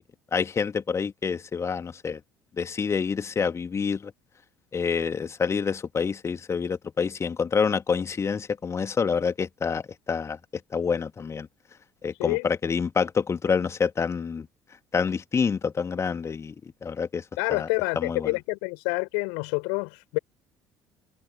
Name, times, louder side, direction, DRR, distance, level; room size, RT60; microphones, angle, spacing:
voice 1, 0.3-2.2 2.6-4.1 4.7-10.4 10.7-11.5 12.0-14.5 14.9-16.5 16.8-17.2 17.5-17.7 18.0-18.3, left 6 dB, 30° left, 2.4 m, -27 dB
voice 2, 17.4-20.2, left 40 dB or more, 65° left, 4.5 m, -28 dB
figure-of-eight pair, 55°, 10 cm